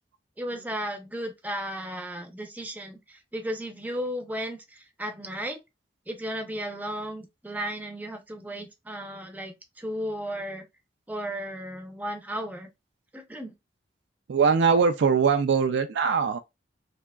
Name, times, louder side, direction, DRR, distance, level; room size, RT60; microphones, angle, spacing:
voice 1, 0.4-5.6 6.1-10.6 11.1-12.7 13.1-13.5, equal, 10° right, 0.6 m, -34 dB
voice 2, 14.3-16.4, right 5 dB, 70° right, 0.4 m, -21 dB
3.5 x 2.9 x 2.3 m
head